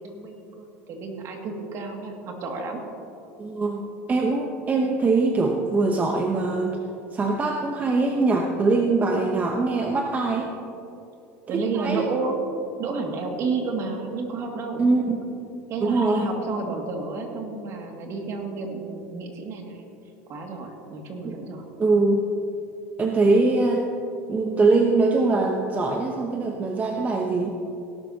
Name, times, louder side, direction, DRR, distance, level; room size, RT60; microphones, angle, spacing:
voice 1, 0.0-2.8 11.5-12.4 12.8-14.9 15.7-19.9 20.3-21.6, right 4 dB, 45° right, 1 dB, 2.3 m, -31 dB
voice 2, 3.4-6.8 7.1-10.5 11.5-12.1 14.8-15.2 15.8-16.3 21.2-21.4 21.8-22.3 23.0-23.9 24.3-27.5, right 3 dB, 25° right, 2 dB, 0.9 m, -22 dB
18.0 x 12.0 x 2.9 m, 2.7 s
supercardioid pair, 110°, 7 cm